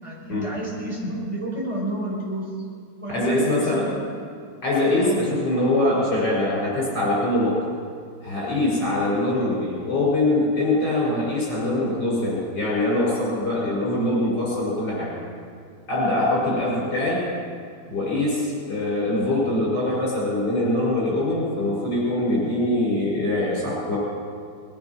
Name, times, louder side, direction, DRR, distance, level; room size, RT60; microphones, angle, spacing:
voice 1, 0.0-2.5 3.0-4.2 5.0-5.2, right 1 dB, 15° right, -5 dB, 4.8 m, -31 dB
voice 2, 3.1-3.9 4.6-7.6 8.2-15.1 15.9-17.2 17.9-24.0, left 1 dB, 65° left, -6 dB, 6.4 m, -23 dB
21.0 x 11.5 x 6.0 m, 2.3 s
omnidirectional pair, 2.0 m